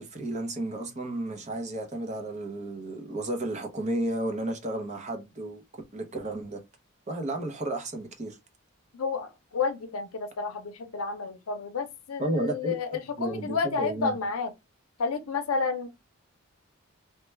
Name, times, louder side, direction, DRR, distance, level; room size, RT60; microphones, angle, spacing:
voice 1, 0.0-5.6 5.9-6.6 7.1-8.4 12.2-12.8 13.2-14.2, right 1 dB, 35° right, 0.7 m, -32 dB
voice 2, 8.9-14.5 15.0-15.9, left 5 dB, 85° left, 0.6 m, -31 dB
3.2 x 2.2 x 3.2 m
head